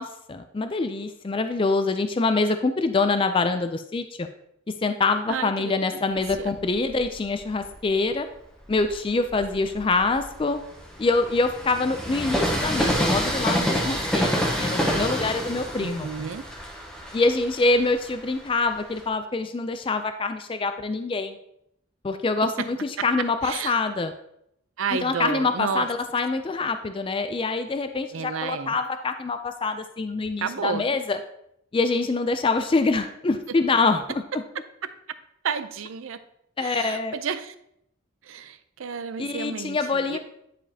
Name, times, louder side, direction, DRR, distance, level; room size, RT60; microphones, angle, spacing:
voice 1, 0.0-4.3 4.8-8.3 8.7-10.6 11.0-16.1 17.1-21.4 22.0-24.1 25.0-31.2 31.7-34.0 36.6-37.1 39.2-40.2, left 3 dB, 25° left, 8 dB, 0.3 m, -25 dB
voice 2, 5.3-6.5 15.8-16.4 22.4-22.7 23.0-23.1 23.4-23.8 24.8-25.9 28.1-28.8 30.4-30.9 34.3-34.6 35.4-36.2 36.6-37.5 38.2-40.2, right 6 dB, 80° right, 12 dB, 0.5 m, -31 dB
Train, 6.2-7.8 8.5-19.1, equal, 5° left, 0.9 m, -28 dB
10.0 x 5.0 x 2.8 m, 0.76 s
head